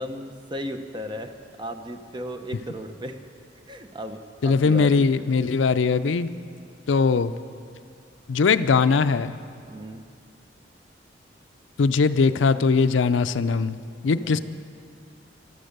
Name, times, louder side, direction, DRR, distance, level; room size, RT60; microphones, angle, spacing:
voice 1, 0.0-1.3 1.6-3.2 3.7-5.0 9.7-10.0 14.1-14.4, equal, 25° right, 7 dB, 0.8 m, -35 dB
voice 2, 4.4-6.3 6.9-7.3 8.3-9.3 11.8-13.8 14.0-14.4, left 4 dB, 90° left, 12 dB, 0.5 m, -20 dB
14.0 x 12.5 x 6.6 m, 2.3 s
head